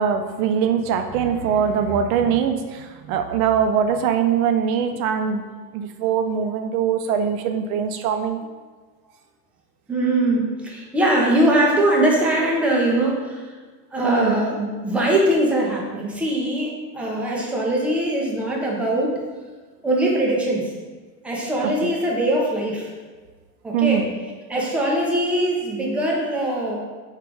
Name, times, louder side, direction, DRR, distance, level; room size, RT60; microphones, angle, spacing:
voice 1, 0.0-5.4 5.7-8.4 14.0-14.4 21.8-21.9 23.7-24.1, right 7 dB, 60° right, 7 dB, 0.5 m, -22 dB
voice 2, 9.9-13.4 13.9-19.2 19.8-20.7 21.2-22.9 23.6-24.1 24.5-26.8, right 1 dB, 5° right, -3 dB, 0.4 m, -21 dB
3.6 x 2.4 x 4.5 m, 1.4 s
hypercardioid pair, 110°, 50 cm